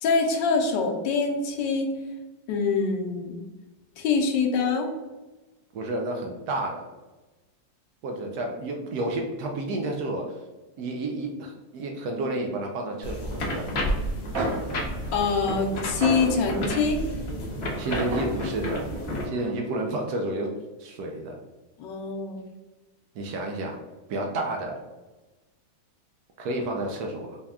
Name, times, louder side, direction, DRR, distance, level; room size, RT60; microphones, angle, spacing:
voice 1, 0.0-1.9 2.5-3.4 4.0-4.9 15.1-17.0 21.8-22.4, left 4 dB, 70° left, 3 dB, 1.2 m, -24 dB
voice 2, 5.7-6.9 8.0-10.4 10.8-13.7 17.7-18.9 19.2-20.5 20.8-21.4 23.1-23.8 24.1-24.8 26.4-27.4, right 2 dB, 85° right, 1 dB, 0.8 m, -30 dB
sound 1, 13.0-19.2, equal, 90° left, 0.5 m, -31 dB
sound 2, 14.0-14.1 14.3-17.0 17.9-19.8, right 2 dB, 55° right, 1.1 m, -33 dB
4.1 x 2.3 x 3.4 m, 1.2 s
omnidirectional pair, 2.2 m